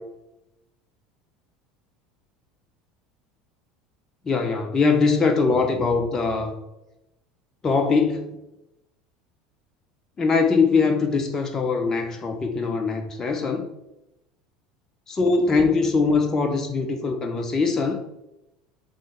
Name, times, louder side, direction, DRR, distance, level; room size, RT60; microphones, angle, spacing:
voice 1, 4.3-6.5 7.6-8.4 10.2-13.7 15.1-18.0, left 4 dB, 30° left, 4 dB, 0.8 m, -22 dB
7.4 x 3.2 x 4.4 m, 0.90 s
hypercardioid pair, 80°, 2 cm